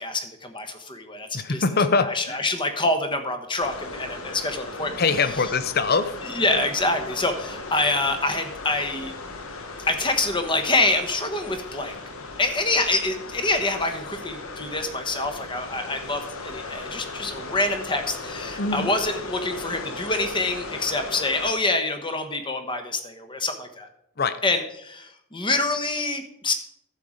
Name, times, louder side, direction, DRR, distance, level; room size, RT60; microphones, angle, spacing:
voice 1, 0.0-1.6 2.0-5.0 6.2-9.1 9.9-12.0 12.4-23.9 24.4-26.5, left 2 dB, 25° left, 7 dB, 1.1 m, -26 dB
voice 2, 1.3-2.4 5.0-6.1 18.6-18.9 24.2-24.4, left 4 dB, 45° left, 12 dB, 0.6 m, -23 dB
sound 1, 3.6-21.5, left 3 dB, 80° left, 1.3 m, -37 dB
11.5 x 7.3 x 5.0 m, 0.76 s
head